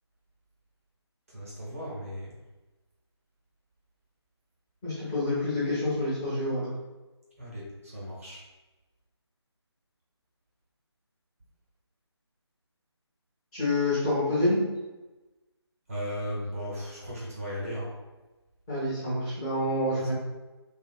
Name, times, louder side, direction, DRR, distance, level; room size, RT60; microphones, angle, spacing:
voice 1, 1.3-2.4 7.4-8.4 15.9-17.9, equal, 30° right, -5 dB, 0.7 m, -36 dB
voice 2, 4.8-6.7 13.5-14.6 18.7-20.1, left 1 dB, 10° left, -13 dB, 0.7 m, -27 dB
3.5 x 2.3 x 2.3 m, 1.1 s
figure-of-eight pair, 155°, 14 cm